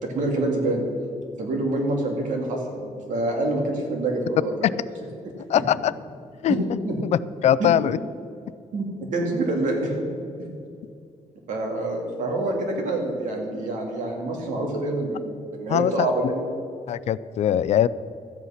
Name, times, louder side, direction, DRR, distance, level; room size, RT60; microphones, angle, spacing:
voice 1, 0.0-0.8 1.4-4.5 5.2-5.3 6.5-7.0 7.6-7.7 8.7-8.8 9.1-10.1 10.4-10.5 11.5-15.3 15.5-16.4, right 2 dB, 80° right, 1 dB, 2.4 m, -26 dB
voice 2, 5.5-5.9 6.4-6.5 7.1-8.0 15.7-16.1 16.9-17.9, left 10 dB, 60° left, 17 dB, 0.4 m, -21 dB
13.5 x 8.3 x 5.8 m, 2.5 s
cardioid pair, 135°, 13 cm